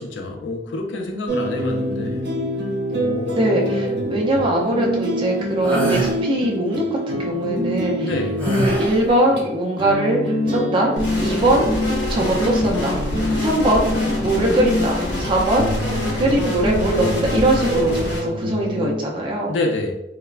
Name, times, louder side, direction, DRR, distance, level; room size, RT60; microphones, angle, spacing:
voice 1, 0.0-2.3 2.9-4.2 8.0-8.5 19.5-19.9, left 2 dB, 85° left, 2 dB, 0.4 m, -27 dB
sound 1, 1.3-18.9, left 1 dB, 80° right, 0.8 m, -25 dB
voice 2, 3.3-8.1 8.6-10.9 11.2-11.7 12.1-13.0 13.4-13.9 14.2-15.7 16.2-19.5, right 1 dB, 30° right, -2 dB, 0.4 m, -21 dB
sound 2, 5.6-6.1 8.4-9.1, right 1 dB, 10° left, 0.7 m, -23 dB
sound 3, 11.0-18.2, equal, 70° left, 1.2 m, -27 dB
3.2 x 2.0 x 2.3 m, 0.91 s
head